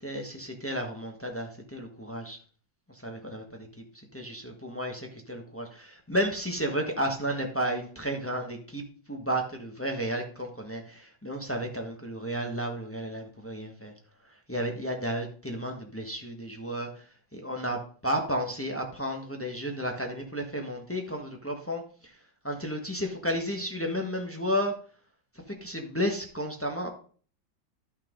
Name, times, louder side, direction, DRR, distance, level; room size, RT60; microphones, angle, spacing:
voice 1, 0.0-2.4 2.9-3.7 4.1-13.9 14.5-17.1 17.3-22.2 22.4-24.7 25.5-26.9, equal, 10° left, 2 dB, 1.0 m, -32 dB
12.0 x 5.8 x 3.7 m, 0.43 s
omnidirectional pair, 2.2 m